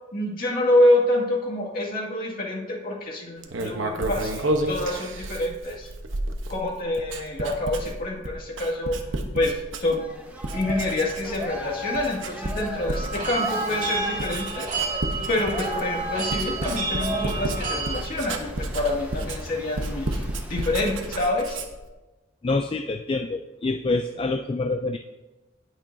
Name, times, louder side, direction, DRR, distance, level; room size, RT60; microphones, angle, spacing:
voice 1, 0.1-5.9 6.5-9.0 9.3-10.1 10.5-14.7 15.3-20.2 20.5-21.6, left 1 dB, 50° left, -3 dB, 2.1 m, -26 dB
Writing, 3.4-10.1 10.4-11.6 11.9-21.9, right 2 dB, 90° right, 1.0 m, -31 dB
sound 1, 10.0-21.2, right 1 dB, 10° right, 1.1 m, -36 dB
sound 2, 12.9-18.0, right 3 dB, 45° right, 2.5 m, -31 dB
voice 2, 22.4-25.0, left 3 dB, 30° left, 7 dB, 0.3 m, -26 dB
18.5 x 6.2 x 2.7 m, 1.1 s
head